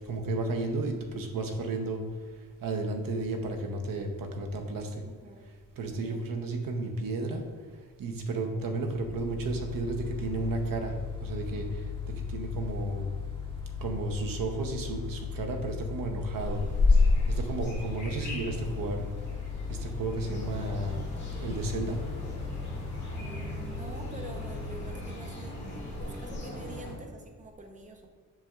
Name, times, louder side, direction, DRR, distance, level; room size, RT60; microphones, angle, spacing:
voice 1, 0.1-2.0 2.6-4.9 5.8-7.4 8.0-10.9 11.2-11.7 12.3-13.1 13.8-16.6 17.3-19.0 19.7-21.0 21.4-22.0, right 2 dB, 75° right, 4 dB, 0.9 m, -32 dB
voice 2, 5.0-5.4 5.8-6.3 23.2-28.1, right 2 dB, 20° right, 3 dB, 0.7 m, -47 dB
Mechanical fan, 8.8-25.7, left 6 dB, 15° left, 1.3 m, -38 dB
sound 1, 16.4-26.9, left 3 dB, 35° left, 1.9 m, -32 dB
7.4 x 6.4 x 2.4 m, 1.4 s
wide cardioid pair, 165°, 34 cm